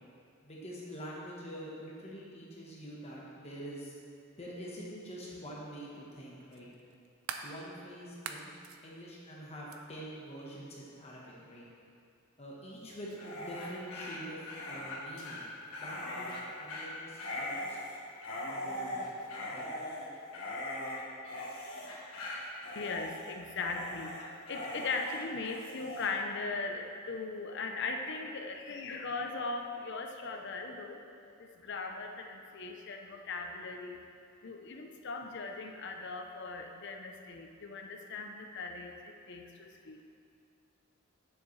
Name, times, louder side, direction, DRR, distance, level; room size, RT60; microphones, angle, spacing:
voice 1, 0.4-3.9 4.4-6.7 7.4-8.5 8.8-11.6 12.4-15.5 15.8-17.8 18.3-19.1 19.4-19.7, equal, 30° left, -5 dB, 1.2 m, -45 dB
sound 1, 4.6-4.7 6.5-7.5 8.1-8.8 9.7-9.8, right 6 dB, 80° right, 0.5 m, -42 dB
Dog, 13.1-26.1, left 1 dB, 85° left, 1.5 m, -40 dB
voice 2, 22.8-34.1 34.4-40.0, left 3 dB, 55° left, 4 dB, 0.7 m, -39 dB
9.8 x 7.0 x 3.2 m, 2.5 s
head